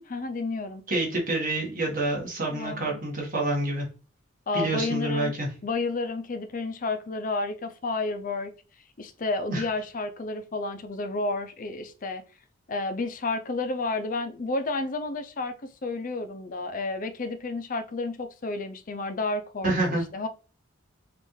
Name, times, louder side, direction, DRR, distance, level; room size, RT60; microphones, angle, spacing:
voice 1, 0.0-0.8 2.5-3.0 4.5-5.3 5.6-8.5 9.0-12.2 12.7-19.8 20.1-20.3, left 3 dB, 40° left, 0.5 m, -31 dB
voice 2, 0.9-3.9 4.5-5.5 9.5-9.6 19.6-20.0, right 2 dB, 45° right, 1.5 m, -27 dB
5.4 x 2.5 x 3.2 m
head